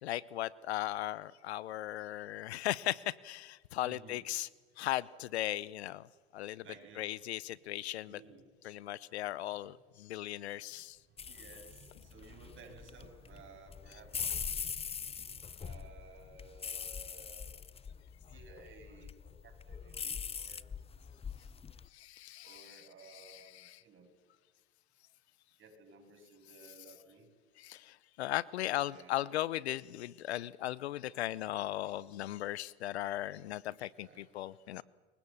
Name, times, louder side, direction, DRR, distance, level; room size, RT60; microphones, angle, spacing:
voice 1, 0.0-4.5 4.8-6.1 6.3-6.6 7.0-8.2 8.6-11.0 20.4-20.5 21.9-23.8 27.6-34.8, left 14 dB, 85° left, 21 dB, 0.8 m, -37 dB
voice 2, 3.8-4.2 6.6-7.1 8.1-8.5 11.2-17.6 18.2-20.6 22.4-24.1 25.6-27.3 28.6-29.2 34.0-34.8, right 4 dB, 40° right, 3 dB, 7.8 m, -56 dB
sound 1, 11.2-21.9, left 6 dB, 20° left, 0.7 m, -42 dB
28.5 x 23.0 x 7.2 m, 1.4 s
hypercardioid pair, 90°, 32 cm